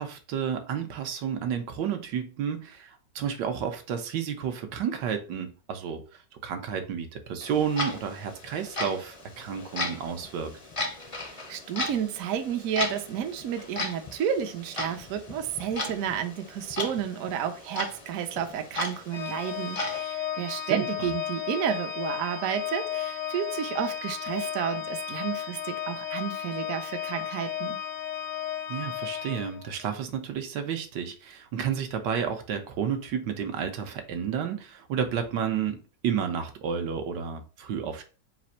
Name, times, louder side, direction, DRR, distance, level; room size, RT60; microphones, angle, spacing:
voice 1, 0.0-10.5 20.7-21.1 28.7-35.8 36.0-38.0, right 7 dB, 85° right, 1.4 m, -31 dB
Clock, 7.4-20.0, left 2 dB, 55° left, 0.3 m, -36 dB
voice 2, 11.3-27.8, right 9 dB, 70° right, 0.8 m, -31 dB
Organ, 19.1-30.0, left 10 dB, 85° left, 1.3 m, -34 dB
4.0 x 2.5 x 4.2 m
omnidirectional pair, 1.8 m